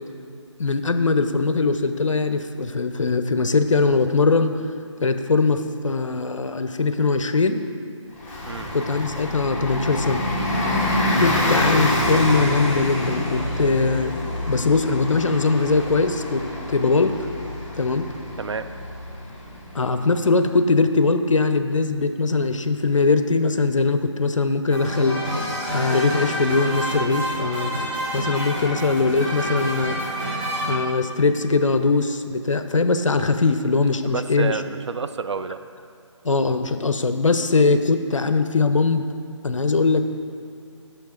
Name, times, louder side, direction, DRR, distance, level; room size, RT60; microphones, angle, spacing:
voice 1, 0.6-4.5 5.0-7.7 8.7-10.2 11.2-14.1 14.5-17.1 17.8-18.1 19.7-25.2 25.7-27.7 28.1-30.0 30.6-34.6 36.2-39.0 39.4-40.0, left 3 dB, 75° left, 9 dB, 0.6 m, -21 dB
Bus, 8.2-20.5, left 1 dB, 25° left, 1.0 m, -26 dB
voice 2, 18.4-18.7 34.0-35.6, right 5 dB, 60° right, 10 dB, 0.4 m, -29 dB
sound 1, 24.7-30.8, equal, 20° right, 1.9 m, -28 dB
6.4 x 6.3 x 4.9 m, 2.3 s
figure-of-eight pair, 155°, 16 cm